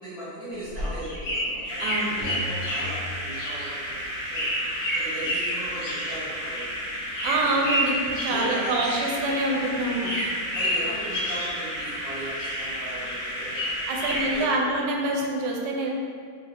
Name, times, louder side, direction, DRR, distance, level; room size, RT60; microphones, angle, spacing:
voice 1, 0.0-4.5 4.9-6.8 7.3-7.6 8.3-8.8 10.5-13.7 14.0-14.6, right 1 dB, 25° right, -18 dB, 1.6 m, -38 dB
sound 1, 0.5-9.6 9.8-12.1 12.3-14.4, equal, 60° left, 1.1 m, -31 dB
sound 2, 1.6-14.5, equal, 55° right, 1.3 m, -33 dB
voice 2, 1.8-2.1 7.2-10.1 13.9-15.9, right 2 dB, 75° right, -1 dB, 1.2 m, -26 dB
sound 3, 2.2-4.1, equal, 20° left, 1.4 m, -38 dB
4.0 x 3.0 x 2.4 m, 2.2 s
omnidirectional pair, 2.0 m